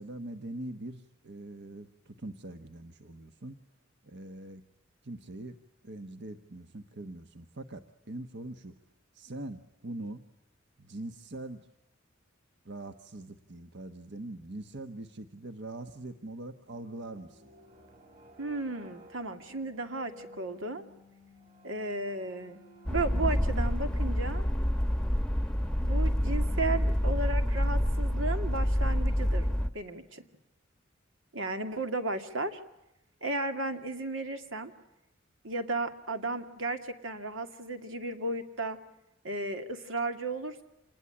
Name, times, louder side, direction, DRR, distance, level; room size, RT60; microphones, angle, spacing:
voice 1, 0.0-3.6 4.0-4.6 5.0-5.6 5.8-8.7 9.1-10.2 10.8-11.7 12.6-17.5, right 2 dB, 60° right, 8 dB, 1.3 m, -42 dB
sound 1, 16.6-25.4, left 1 dB, 40° right, 7.1 m, -55 dB
voice 2, 18.4-20.8 21.6-22.6 22.9-24.4 25.8-29.5 29.7-30.2 31.3-32.6 33.2-34.7 35.4-38.8 39.2-40.6, right 2 dB, 90° right, 7 dB, 2.4 m, -34 dB
sound 2, 22.9-29.7, equal, 5° left, 1.0 m, -27 dB
27.5 x 20.5 x 9.9 m, 0.91 s
head